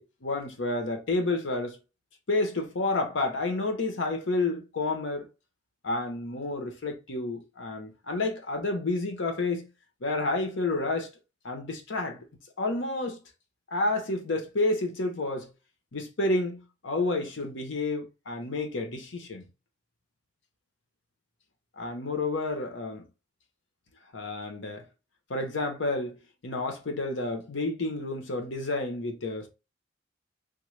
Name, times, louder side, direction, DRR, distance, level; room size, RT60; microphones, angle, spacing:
voice 1, 0.0-1.8 2.3-5.3 5.8-9.7 10.0-11.1 11.4-12.2 12.6-13.2 13.7-15.5 15.9-19.5 21.8-23.1 24.1-24.8 25.3-26.2 26.4-29.5, left 2 dB, 80° left, 0.9 m, -30 dB
3.6 x 2.2 x 3.2 m
head